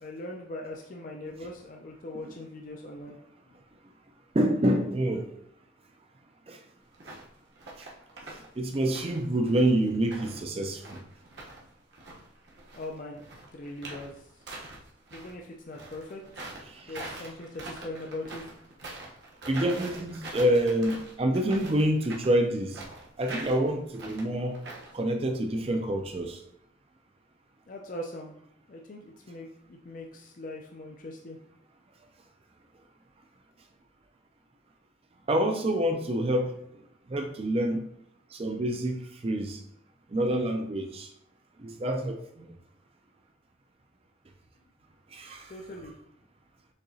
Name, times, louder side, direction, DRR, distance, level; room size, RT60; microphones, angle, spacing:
voice 1, 0.0-3.2 3.5-3.6 12.7-13.2 13.5-14.3 15.1-16.5 16.8-18.5 27.7-28.3 28.7-31.4 45.5-45.9, left 1 dB, 45° left, 1 dB, 0.4 m, -41 dB
voice 2, 4.3-5.3 6.5-6.6 8.6-11.0 16.7-16.9 19.5-22.8 23.2-24.6 24.9-26.4 35.3-36.6 37.1-37.8 38.3-39.6 40.1-41.1 41.6-42.5 45.1-45.5, right 1 dB, 30° right, 5 dB, 0.4 m, -27 dB
sound 1, 6.9-7.3 7.6-8.5 8.7-11.6 11.9-15.3 15.7-25.0, right 2 dB, 60° right, 1.0 m, -43 dB
6.4 x 2.9 x 2.7 m, 0.71 s
head